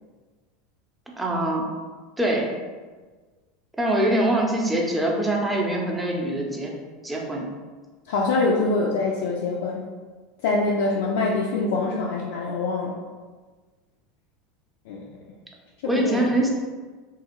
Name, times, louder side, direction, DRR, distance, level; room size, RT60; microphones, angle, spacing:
voice 1, 1.2-1.7 2.2-2.5 3.8-6.7 7.0-7.5 15.9-16.5, right 1 dB, 10° right, -2 dB, 0.7 m, -23 dB
voice 2, 8.1-9.9 10.4-13.0 14.9-15.1 15.8-16.3, left 3 dB, 65° left, -3 dB, 0.3 m, -24 dB
2.9 x 2.4 x 2.9 m, 1.4 s
figure-of-eight pair, 80°, 0 cm